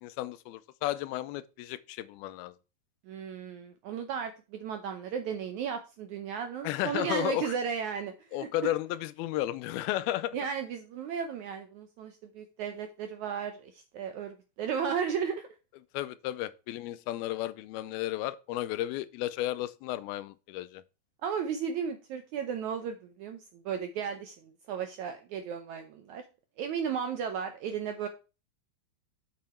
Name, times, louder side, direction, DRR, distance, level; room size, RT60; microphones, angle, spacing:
voice 1, 0.0-2.5 6.6-7.5 8.3-10.4 15.9-20.8, left 14 dB, 85° left, 2.5 m, -33 dB
voice 2, 3.1-8.7 10.3-15.5 21.2-26.2 26.6-28.1, right 7 dB, 75° right, 1.7 m, -35 dB
7.7 x 6.6 x 4.3 m
omnidirectional pair, 4.3 m